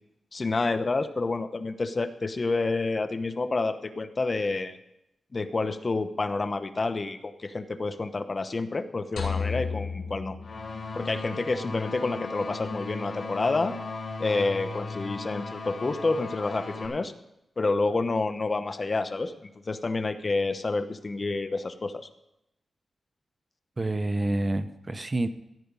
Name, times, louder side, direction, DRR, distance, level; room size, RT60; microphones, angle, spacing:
voice 1, 0.3-4.8 5.3-10.4 10.9-13.7 14.2-17.1 17.6-22.1, left 3 dB, 40° left, 10 dB, 0.9 m, -29 dB
sound 1, 9.2-11.4, left 5 dB, 90° left, 3.2 m, -33 dB
sound 2, 10.4-16.9, left 3 dB, 60° left, 3.6 m, -37 dB
voice 2, 23.8-25.3, right 2 dB, 30° right, 11 dB, 0.8 m, -28 dB
15.5 x 5.1 x 9.6 m, 0.84 s
cardioid pair, 80°, 0 cm